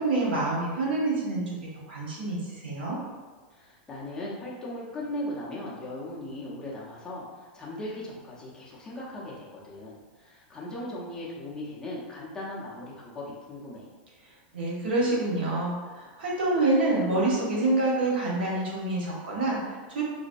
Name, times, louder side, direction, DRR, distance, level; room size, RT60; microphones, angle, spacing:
voice 1, 0.0-1.6 1.9-3.0 14.5-20.0, right 2 dB, 90° right, -4 dB, 1.1 m, -27 dB
voice 2, 3.5-13.9, left 1 dB, 10° left, -6 dB, 0.7 m, -38 dB
3.9 x 2.1 x 2.5 m, 1.4 s
supercardioid pair, 155°, 5 cm